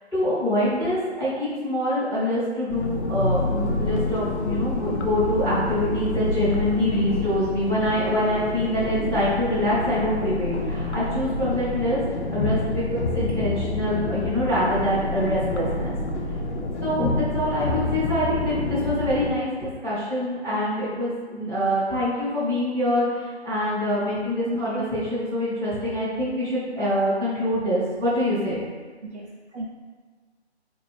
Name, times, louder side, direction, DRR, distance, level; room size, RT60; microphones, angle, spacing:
voice 1, 0.1-12.0 12.3-15.9 16.8-28.6, left 1 dB, 5° left, -16 dB, 0.8 m, -25 dB
sound 1, 2.7-19.3, left 2 dB, 80° left, 0.6 m, -28 dB
voice 2, 13.1-13.5 17.0-17.3 24.5-25.0 29.0-29.7, equal, 80° right, -1 dB, 0.5 m, -33 dB
4.2 x 2.5 x 3.2 m, 1.5 s
figure-of-eight pair, 150°, 34 cm